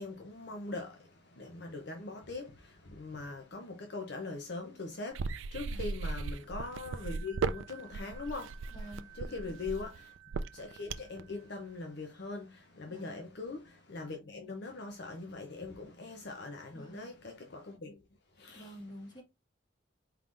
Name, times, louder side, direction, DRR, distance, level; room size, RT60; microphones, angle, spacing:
voice 1, 0.0-8.8 9.1-10.2 10.5-18.0 18.3-18.7, left 3 dB, 55° left, 0.7 m, -42 dB
sound 1, 5.1-11.2, right 4 dB, 70° right, 0.4 m, -36 dB
voice 2, 5.6-6.0 8.7-9.6 12.9-13.2 16.7-17.1 18.5-19.2, equal, 20° left, 1.6 m, -49 dB
sound 2, 6.1-12.5, right 13 dB, 15° right, 0.5 m, -57 dB
4.6 x 3.6 x 2.5 m
head